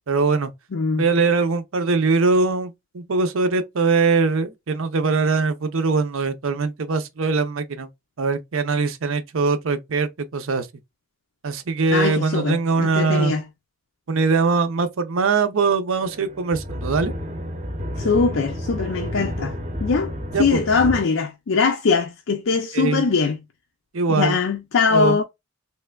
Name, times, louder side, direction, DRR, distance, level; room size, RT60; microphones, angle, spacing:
voice 1, 0.1-0.5 1.0-7.9 8.2-10.7 11.4-13.3 14.1-17.1 20.3-20.6 22.7-23.0 23.9-24.4 24.9-25.2, right 4 dB, 65° right, 0.6 m, -21 dB
voice 2, 0.7-1.0 11.9-13.4 18.0-20.1 20.4-23.4 24.1-25.2, left 4 dB, 60° left, 0.5 m, -21 dB
sound 1, 16.0-21.0, equal, 30° right, 0.7 m, -30 dB
3.3 x 3.1 x 2.3 m
head